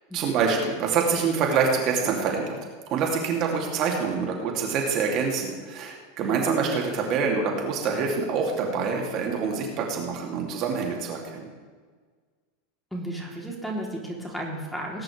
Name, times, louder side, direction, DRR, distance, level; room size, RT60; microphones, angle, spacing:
voice 1, 0.1-2.6 2.9-11.5, right 5 dB, 50° right, 0 dB, 2.9 m, -26 dB
voice 2, 12.9-15.0, right 1 dB, 5° left, -1 dB, 3.4 m, -34 dB
19.5 x 10.5 x 3.5 m, 1.5 s
hypercardioid pair, 95°, 0 cm